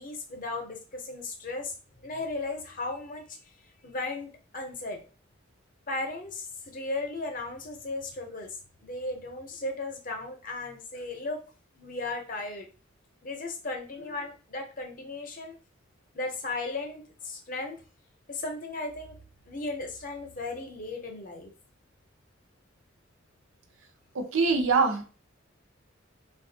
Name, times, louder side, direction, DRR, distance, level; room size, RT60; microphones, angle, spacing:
voice 1, 0.0-1.7 2.0-3.5 3.8-5.0 5.9-11.4 11.7-12.7 13.2-15.5 16.1-17.8 18.3-19.1 19.5-21.5, left 2 dB, 40° left, 4 dB, 0.6 m, -36 dB
voice 2, 24.1-25.0, right 4 dB, 80° right, 6 dB, 0.6 m, -24 dB
3.5 x 2.3 x 2.6 m, 0.36 s
head